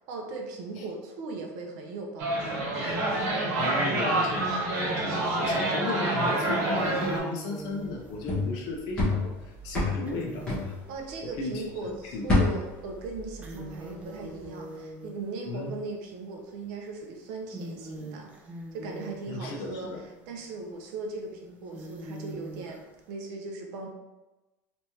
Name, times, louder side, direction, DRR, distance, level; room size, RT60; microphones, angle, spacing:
voice 1, 0.1-2.6 10.9-18.3 18.7-22.8 23.1-23.9, right 3 dB, 55° right, 1 dB, 0.7 m, -38 dB
sound 1, 2.2-7.2, right 2 dB, 70° right, 1.3 m, -27 dB
voice 2, 3.6-10.8 11.2-12.3 15.5-15.7 19.3-20.0, left 3 dB, 50° left, 1 dB, 0.7 m, -35 dB
sound 2, 4.9-5.4 5.9-11.7 12.3-12.4 12.8-15.8 16.6-16.9 17.3-23.1, right 2 dB, 15° right, 0.4 m, -43 dB
sound 3, 7.8-11.6 11.9-13.9 14.2-14.5, left 2 dB, 10° left, 1.2 m, -29 dB
3.4 x 3.0 x 2.9 m, 1.1 s
cardioid pair, 170°, 9 cm